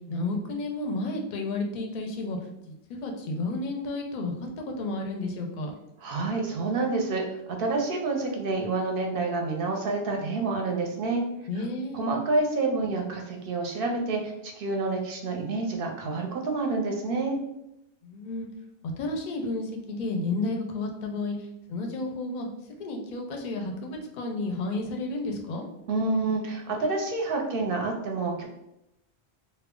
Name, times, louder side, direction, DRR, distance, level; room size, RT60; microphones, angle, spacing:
voice 1, 0.1-2.4 2.7-5.7 11.5-12.1 18.0-18.5 18.8-22.5 22.8-25.6, left 2 dB, 55° left, 3 dB, 0.5 m, -32 dB
voice 2, 6.0-11.2 11.9-17.4 25.9-28.5, right 3 dB, 65° right, 1 dB, 0.7 m, -28 dB
2.3 x 2.1 x 3.6 m, 0.84 s
omnidirectional pair, 1.1 m